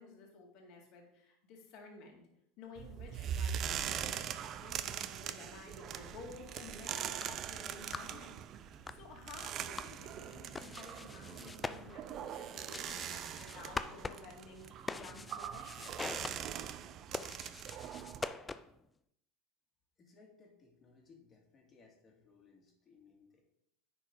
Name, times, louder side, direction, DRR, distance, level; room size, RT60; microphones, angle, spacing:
voice 1, 0.0-2.2 2.6-8.4 8.9-16.0, left 4 dB, 55° left, 1 dB, 2.1 m, -53 dB
sound 1, 2.8-18.3, right 9 dB, 40° right, 0.5 m, -42 dB
sound 2, 6.9-18.9, left 3 dB, 15° left, 0.4 m, -46 dB
voice 2, 20.0-23.4, left 4 dB, 30° left, 0 dB, 2.2 m, -63 dB
10.0 x 4.5 x 3.8 m, 0.78 s
supercardioid pair, 115°, 0 cm